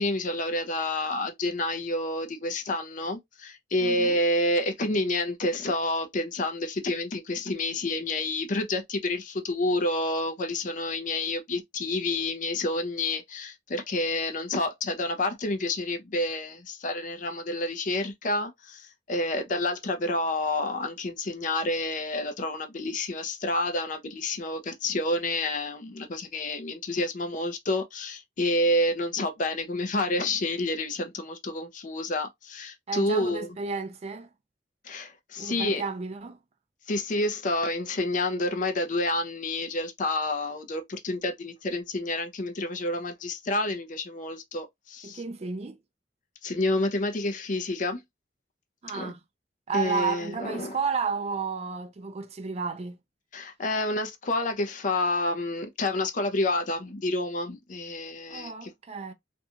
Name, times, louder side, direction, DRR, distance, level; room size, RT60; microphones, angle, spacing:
voice 1, 0.0-33.5 34.8-35.8 36.9-45.2 46.4-48.0 48.9-49.1 49.7-50.8 53.3-58.7, left 2 dB, 45° left, 0.5 m, -29 dB
voice 2, 3.8-4.2 32.9-34.3 35.4-36.4 45.0-45.8 48.8-49.2 49.7-53.0 58.3-59.1, right 5 dB, 35° right, 0.4 m, -32 dB
2.6 x 2.3 x 2.7 m
head